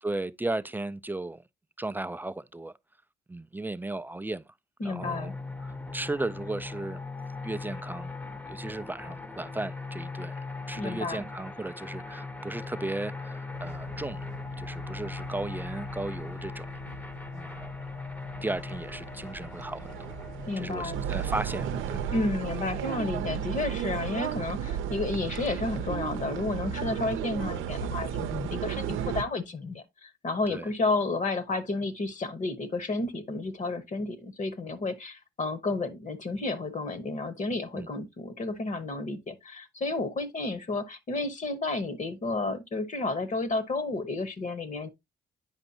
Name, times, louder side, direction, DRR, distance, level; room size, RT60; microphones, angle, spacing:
voice 1, 0.0-1.4 1.8-2.7 3.3-4.5 4.8-5.3 5.6-7.0 7.4-8.1 8.5-10.3 10.7-14.2 14.6-16.7 17.3-17.7 18.4-20.1 20.6-22.1 30.5-30.7 37.7-37.9, right 2 dB, 10° right, 0.3 m, -35 dB
voice 2, 4.8-5.3 10.8-11.3 20.5-21.0 22.1-44.9, left 3 dB, 40° left, 1.0 m, -31 dB
sound 1, 5.0-23.6, left 3 dB, 10° left, 0.7 m, -40 dB
sound 2, 13.5-28.3, equal, 90° left, 5.1 m, -47 dB
sound 3, 18.4-29.2, right 9 dB, 85° right, 0.6 m, -34 dB
8.9 x 5.2 x 2.7 m
cardioid pair, 90°, 20 cm